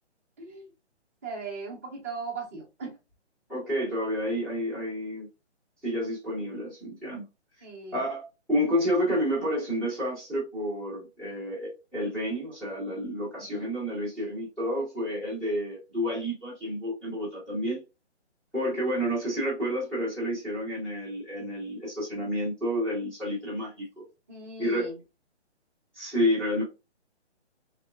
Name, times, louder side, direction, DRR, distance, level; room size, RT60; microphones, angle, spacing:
voice 1, 0.4-0.7 1.2-3.0 7.6-8.0 13.4-13.7 24.3-25.0, right 4 dB, 15° right, 0.6 m, -38 dB
voice 2, 3.5-5.3 5.8-7.2 7.9-8.2 8.5-17.8 18.5-24.0 24.6-24.9 25.9-26.6, equal, ahead, 1.2 m, -30 dB
3.5 x 2.8 x 2.3 m
hypercardioid pair, 160°, 35 cm